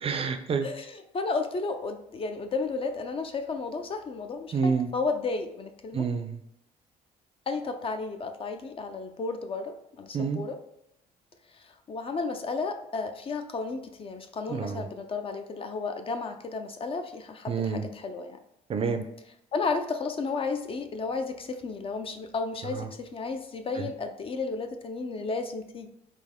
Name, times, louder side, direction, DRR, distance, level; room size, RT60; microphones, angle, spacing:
voice 1, 0.0-0.7 4.5-4.9 5.9-6.4 10.1-10.4 14.5-14.8 17.5-17.8 18.7-19.0 22.8-22.9 23.8-23.9, right 5 dB, 35° right, 7 dB, 0.4 m, -28 dB
voice 2, 0.6-6.1 7.5-10.6 11.5-18.4 19.5-25.9, left 4 dB, 35° left, 7 dB, 0.4 m, -33 dB
4.2 x 2.7 x 3.6 m, 0.81 s
cardioid pair, 110°, 17 cm